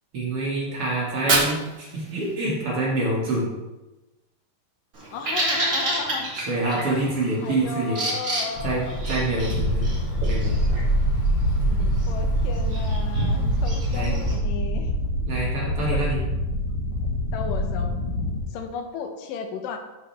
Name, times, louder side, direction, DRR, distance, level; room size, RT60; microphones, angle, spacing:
voice 1, 0.1-3.5 6.5-8.1 8.6-9.9 10.3-10.6 11.7-11.9 13.9-14.1 15.3-16.2, right 2 dB, 50° right, -5 dB, 2.2 m, -26 dB
Fire, 1.0-3.0, right 3 dB, 90° right, 0.8 m, -27 dB
Bird vocalization bird call bird song, 4.9-14.4, right 1 dB, 30° right, 2.0 m, -31 dB
voice 2, 5.1-6.3 6.9-7.1 7.4-9.0 12.1-14.9 15.9-16.1 17.3-17.9 18.5-19.8, left 5 dB, 80° left, 5 dB, 2.4 m, -34 dB
sound 1, 8.6-18.4, equal, 55° left, 1.7 m, -25 dB
12.5 x 4.7 x 3.3 m, 1.1 s
omnidirectional pair, 4.0 m